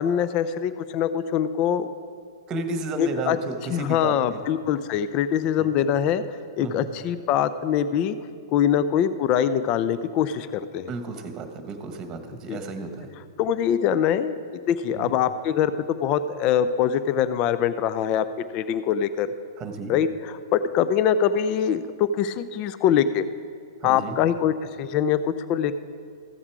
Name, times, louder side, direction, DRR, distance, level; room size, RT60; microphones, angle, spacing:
voice 1, 0.0-1.9 3.0-3.4 3.7-6.2 6.6-8.2 8.5-10.9 12.5-12.6 13.4-15.7 16.0-18.2 18.5-19.3 19.9-20.1 20.5-23.2 23.8-25.7, left 9 dB, 40° left, 13 dB, 0.4 m, -23 dB
voice 2, 2.5-4.4 5.6-5.7 6.6-6.9 10.9-13.1 14.9-15.1 19.6-20.0 23.8-24.2, right 3 dB, 25° right, 6 dB, 1.3 m, -33 dB
14.5 x 7.2 x 4.7 m, 2.2 s
hypercardioid pair, 115°, 2 cm